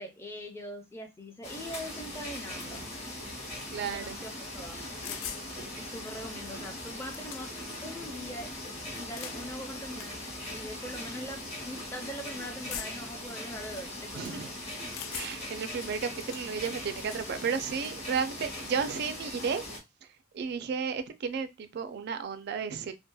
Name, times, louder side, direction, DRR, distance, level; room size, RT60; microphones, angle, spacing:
voice 1, 0.0-2.9 3.8-4.8 5.1-5.2 5.6-8.5 9.0-10.2 10.5-14.5, equal, 15° left, 0.4 m, -42 dB
sound 1, 1.4-19.8, left 1 dB, 30° left, 0.9 m, -40 dB
sound 2, 1.8-11.7, left 1 dB, 60° left, 0.7 m, -53 dB
voice 2, 3.7-4.2 14.1-14.5 15.1-19.6 20.3-22.9, right 6 dB, 55° right, 0.3 m, -33 dB
sound 3, 5.0-5.5 6.5-6.6 6.9-7.7 8.9-9.4 10.0-10.1 10.9-11.1 12.7-13.1 14.9-15.5 15.9-16.4, left 10 dB, 85° left, 0.3 m, -40 dB
2.7 x 2.1 x 2.2 m
head